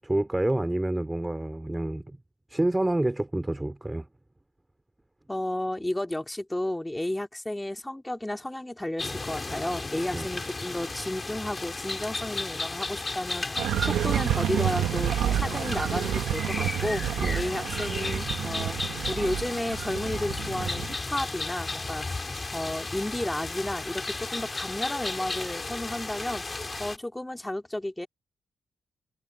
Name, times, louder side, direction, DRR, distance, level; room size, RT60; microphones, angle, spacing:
voice 1, 0.0-2.2 2.5-4.1 10.1-10.3 17.2-17.4, right 1 dB, 10° right, 3.1 m, -28 dB
voice 2, 5.3-17.0 17.3-18.8 19.1-26.4 26.8-28.1, left 1 dB, 10° left, 3.3 m, -32 dB
sound 1, 9.0-27.0, left 3 dB, 25° left, 3.6 m, -34 dB
sound 2, 13.6-21.0, right 11 dB, 85° right, 1.7 m, -29 dB
cardioid pair, 90°, 0 cm